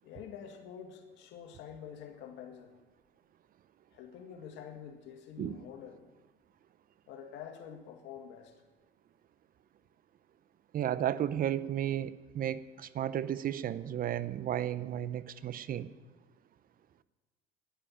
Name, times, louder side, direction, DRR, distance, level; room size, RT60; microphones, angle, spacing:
voice 1, 0.0-2.7 3.9-6.0 7.1-8.6, left 8 dB, 70° left, 5 dB, 2.1 m, -47 dB
voice 2, 10.7-15.9, right 11 dB, 50° right, 16 dB, 0.7 m, -33 dB
10.0 x 10.0 x 9.9 m, 1.3 s
supercardioid pair, 80°, 19 cm